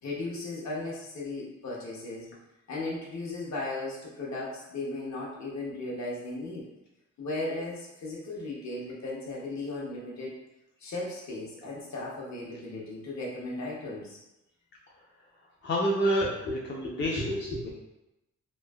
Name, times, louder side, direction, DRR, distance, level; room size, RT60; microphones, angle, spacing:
voice 1, 0.0-2.3 2.7-6.7 7.2-10.4 10.8-14.2 16.5-17.8, left 2 dB, 65° left, -4 dB, 0.8 m, -36 dB
voice 2, 15.6-17.4, equal, 40° left, -3 dB, 0.4 m, -28 dB
3.1 x 2.6 x 2.3 m, 0.92 s
wide cardioid pair, 155°, 30 cm